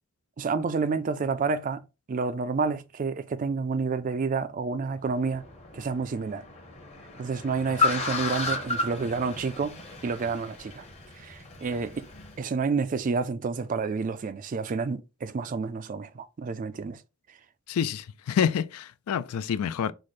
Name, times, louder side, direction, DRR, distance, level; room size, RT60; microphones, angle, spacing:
voice 1, 0.4-1.8 2.1-5.4 5.7-6.4 7.2-10.9 11.1-12.1 12.4-17.0, right 4 dB, 35° right, 0.3 m, -29 dB
Car, 5.0-12.4, left 3 dB, 30° left, 0.8 m, -33 dB
voice 2, 17.7-19.9, left 8 dB, 80° left, 0.3 m, -27 dB
4.8 x 2.1 x 4.1 m
head